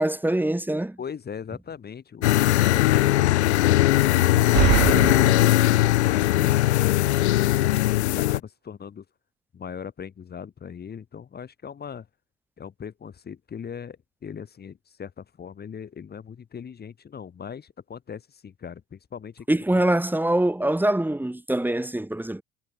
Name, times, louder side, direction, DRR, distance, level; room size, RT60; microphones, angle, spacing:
voice 1, 0.0-1.0 19.5-22.4, right 1 dB, 5° right, 4.5 m, -24 dB
voice 2, 1.0-3.3 7.9-9.0 9.5-12.1 12.6-19.5, left 7 dB, 25° left, 3.8 m, -39 dB
sound 1, 2.2-8.4, left 16 dB, 65° left, 0.9 m, -20 dB
sound 2, 4.3-6.0, right 40 dB or more, 50° right, 1.0 m, -24 dB
figure-of-eight pair, 70°, 36 cm